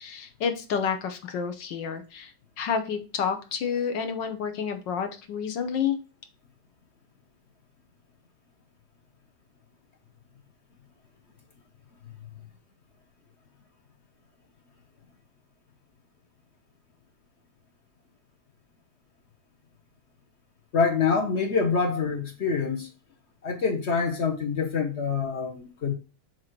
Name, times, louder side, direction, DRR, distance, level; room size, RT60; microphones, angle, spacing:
voice 1, 0.0-6.0, left 7 dB, 70° left, 1.5 m, -29 dB
voice 2, 20.7-22.9 23.4-25.9, left 5 dB, 50° left, 0.8 m, -26 dB
7.4 x 3.0 x 4.4 m
omnidirectional pair, 2.2 m